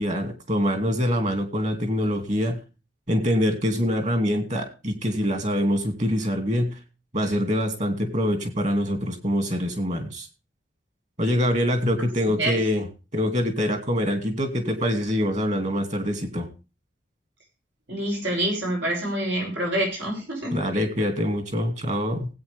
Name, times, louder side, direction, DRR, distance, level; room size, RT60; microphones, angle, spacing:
voice 1, 0.0-2.6 3.1-6.8 7.1-10.3 11.2-12.9 13.1-16.5 20.5-22.3, equal, 40° right, 6 dB, 2.4 m, -24 dB
voice 2, 17.9-20.6, right 1 dB, 85° right, -1 dB, 7.2 m, -26 dB
19.0 x 8.7 x 3.5 m, 0.32 s
head